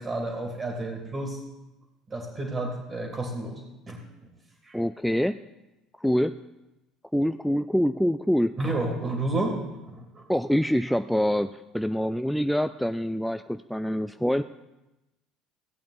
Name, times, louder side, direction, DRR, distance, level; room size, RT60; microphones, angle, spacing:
voice 1, 0.0-1.4 2.1-3.6 3.9-4.3 4.6-4.8 8.6-9.6 9.9-10.2, right 2 dB, 30° right, 1 dB, 2.6 m, -30 dB
voice 2, 4.7-5.4 6.0-6.4 7.1-8.5 10.3-14.4, equal, ahead, 10 dB, 0.3 m, -25 dB
16.0 x 8.5 x 4.1 m, 0.99 s
figure-of-eight pair, 60°, 0 cm